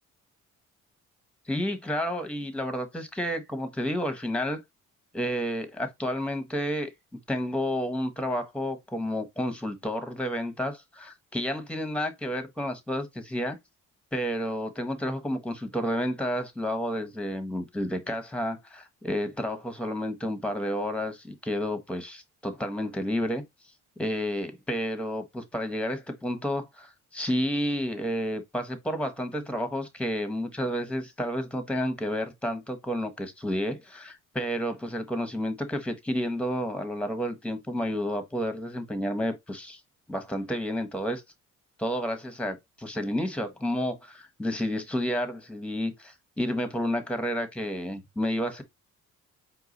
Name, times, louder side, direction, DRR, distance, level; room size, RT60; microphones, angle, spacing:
voice 1, 1.5-4.6 5.1-6.9 7.3-13.6 14.1-23.4 24.0-39.8 40.1-41.2 41.8-48.6, equal, 5° left, 1.1 m, -30 dB
4.7 x 2.3 x 3.9 m
cardioid pair, 90°, 30 cm